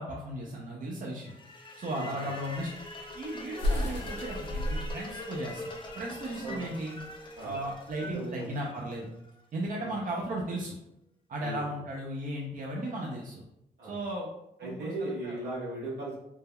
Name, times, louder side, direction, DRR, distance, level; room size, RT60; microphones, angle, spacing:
voice 1, 0.0-1.3 1.8-2.7 3.1-5.6 5.9-7.0 7.4-9.1 9.5-10.7 11.3-13.4 13.8-14.3 14.6-15.4, right 1 dB, 50° right, -2 dB, 0.5 m, -36 dB
sound 1, 1.2-9.3, left 2 dB, 30° left, 0.5 m, -43 dB
voice 2, 1.9-2.3 6.4-6.6 7.4-7.6 8.1-8.5 9.7-9.9 11.4-11.6 13.8-14.0 14.6-16.2, right 1 dB, 80° right, -6 dB, 1.1 m, -37 dB
sound 2, 2.6-8.1, left 1 dB, 80° left, 0.7 m, -34 dB
3.3 x 2.1 x 2.2 m, 0.83 s
supercardioid pair, 50°, 18 cm